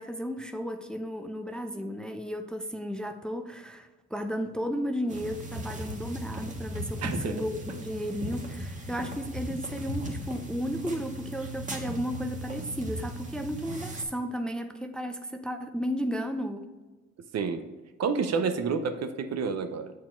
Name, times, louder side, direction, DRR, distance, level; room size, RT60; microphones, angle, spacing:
voice 1, 0.0-16.7, equal, 5° left, 7 dB, 0.5 m, -34 dB
sound 1, 5.1-14.0, equal, 25° right, 1.4 m, -37 dB
voice 2, 7.0-7.4 17.3-17.7 18.0-19.9, right 5 dB, 60° right, 9 dB, 0.7 m, -29 dB
7.4 x 4.7 x 4.4 m, 1.2 s
cardioid pair, 90°, 30 cm